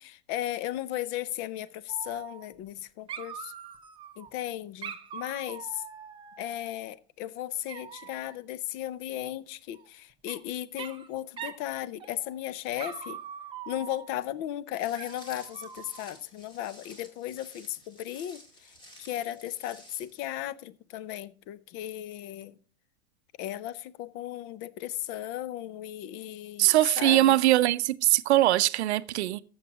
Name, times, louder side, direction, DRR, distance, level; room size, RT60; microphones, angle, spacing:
voice 1, 0.0-3.5 4.2-5.8 6.4-13.2 13.7-22.6 23.4-27.4, left 13 dB, 30° left, 0.5 m, -36 dB
Dog, 1.9-2.8 3.1-4.3 4.8-6.9 7.7-8.4 9.7-10.4 10.8-11.1 11.4-11.7 12.0-12.4 12.8-14.3 15.0-16.2, right 7 dB, 15° right, 0.7 m, -43 dB
Walk footsteps, 14.8-20.3, equal, 15° left, 1.9 m, -53 dB
voice 2, 26.6-29.4, right 15 dB, 80° right, 0.6 m, -22 dB
14.0 x 7.3 x 2.9 m
supercardioid pair, 145°, 33 cm